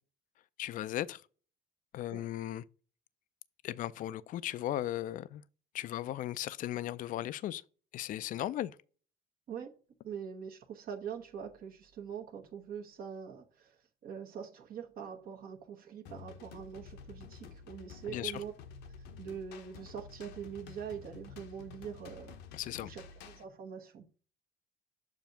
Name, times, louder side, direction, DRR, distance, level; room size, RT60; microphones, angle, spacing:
voice 1, 0.6-1.2 1.9-2.6 3.6-5.4 5.7-7.6 7.9-8.8 18.1-18.4 22.5-22.9, left 13 dB, 50° left, 0.4 m, -36 dB
voice 2, 10.0-13.8 14.0-18.5 19.2-22.3 22.8-24.1, right 7 dB, 60° right, 1.1 m, -43 dB
sound 1, 16.1-23.4, left 6 dB, 90° left, 0.9 m, -50 dB
7.1 x 2.7 x 5.6 m
cardioid pair, 110°, 17 cm